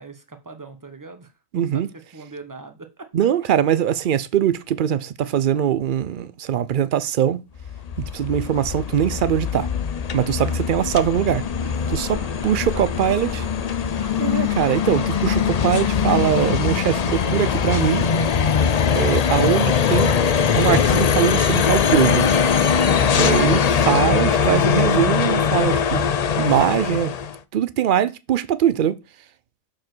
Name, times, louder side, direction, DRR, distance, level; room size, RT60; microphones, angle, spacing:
voice 1, 0.0-3.1 10.5-10.9 11.6-14.6, right 3 dB, 15° right, 1.0 m, -42 dB
voice 2, 1.5-1.9 3.1-7.4 8.0-9.7 10.1-11.4 11.9-12.2 12.4-13.3 14.2-18.1 18.9-20.1 20.6-22.3 23.2-26.1 26.4-27.1 27.5-29.0, right 10 dB, 65° right, 0.5 m, -21 dB
sound 1, 7.6-27.4, left 7 dB, 70° left, 0.3 m, -21 dB
7.1 x 5.0 x 6.1 m
omnidirectional pair, 1.5 m